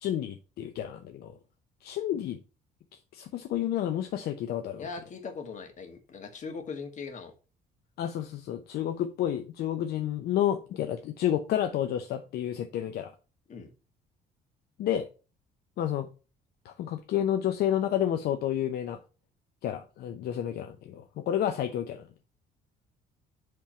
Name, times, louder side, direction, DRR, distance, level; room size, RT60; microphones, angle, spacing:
voice 1, 0.0-1.3 1.8-2.4 3.1-4.9 8.0-13.1 14.8-15.1 15.8-16.1 16.6-19.0 19.6-22.1, left 11 dB, 70° left, 0.7 m, -30 dB
voice 2, 4.8-7.3 13.5-13.7, left 5 dB, 45° left, 1.7 m, -40 dB
7.6 x 3.6 x 5.6 m
cardioid pair, 110°, 17 cm